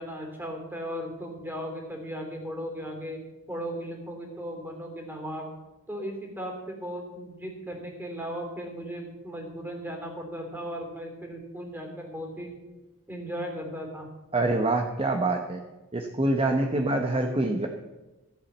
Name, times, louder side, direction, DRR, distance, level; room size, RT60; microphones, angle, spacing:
voice 1, 0.0-3.2 3.5-5.5 5.9-12.5 13.1-14.1, equal, 10° right, 2 dB, 3.3 m, -36 dB
voice 2, 14.3-15.6 15.9-17.7, right 2 dB, 25° right, 3 dB, 1.0 m, -25 dB
14.5 x 8.4 x 7.3 m, 1.1 s
head